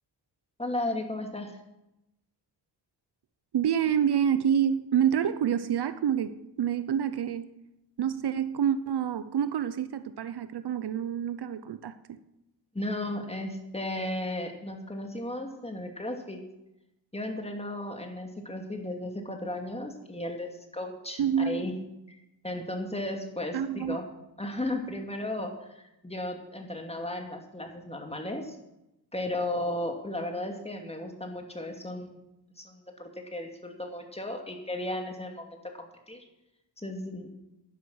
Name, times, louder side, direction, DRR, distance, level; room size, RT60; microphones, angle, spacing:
voice 1, 0.6-1.6 12.7-16.4 17.1-21.8 22.1-22.2 22.4-24.0 24.4-28.6 29.1-32.2 32.6-36.2 36.8-37.3, left 1 dB, 15° left, 3 dB, 2.5 m, -35 dB
voice 2, 3.5-7.5 8.0-12.2 21.2-21.7 23.5-24.0, right 9 dB, 65° right, 13 dB, 0.7 m, -27 dB
11.0 x 10.5 x 6.4 m, 0.90 s
cardioid pair, 80°, 43 cm